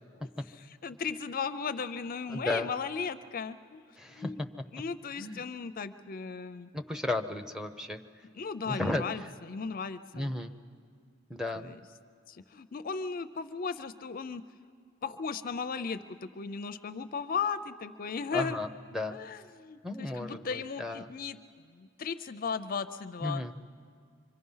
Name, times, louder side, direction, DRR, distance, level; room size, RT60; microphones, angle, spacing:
voice 1, 0.8-4.4 4.7-6.7 8.3-10.3 11.5-11.8 12.3-14.4 15.0-18.6 19.1-21.4 21.7-23.4, left 5 dB, 45° left, 12 dB, 0.5 m, -36 dB
voice 2, 2.3-2.7 4.0-4.5 5.2-5.4 6.7-8.0 8.6-9.0 10.1-10.5 11.3-11.7 18.3-19.2 19.8-21.1 23.2-23.5, left 2 dB, 5° right, 5 dB, 0.8 m, -34 dB
26.0 x 24.5 x 5.6 m, 2.1 s
head